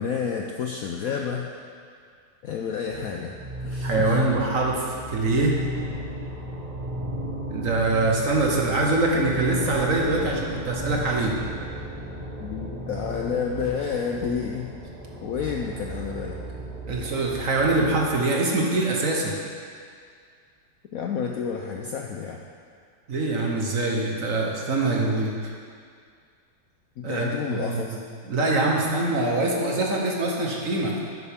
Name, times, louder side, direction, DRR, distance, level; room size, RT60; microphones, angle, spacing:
voice 1, 0.0-1.5 2.4-3.4 3.6-4.2 12.4-14.7 15.2-16.4 20.9-22.4 27.0-28.0, left 6 dB, 70° left, 1 dB, 0.8 m, -30 dB
sound 1, 2.8-18.1, equal, 25° right, 1.1 m, -34 dB
voice 2, 3.8-5.5 7.5-11.3 16.9-19.4 23.1-25.3 27.0-28.0 28.2-30.9, right 2 dB, 50° right, -1 dB, 1.3 m, -24 dB
11.0 x 8.9 x 3.6 m, 2.1 s
omnidirectional pair, 2.0 m